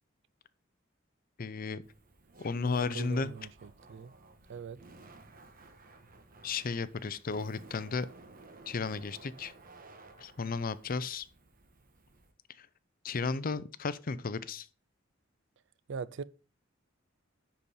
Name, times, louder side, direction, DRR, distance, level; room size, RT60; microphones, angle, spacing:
voice 1, 1.4-1.8 2.4-3.3 6.4-8.1 8.7-9.5 10.2-11.3 12.6-12.7 13.0-14.7, left 4 dB, 45° left, 0.5 m, -34 dB
Laughter, 1.8-12.3, right 3 dB, 45° right, 1.2 m, -55 dB
voice 2, 2.6-3.5 3.9-4.1 4.5-4.8 15.9-16.2, right 5 dB, 65° right, 0.4 m, -41 dB
10.0 x 4.2 x 5.4 m
head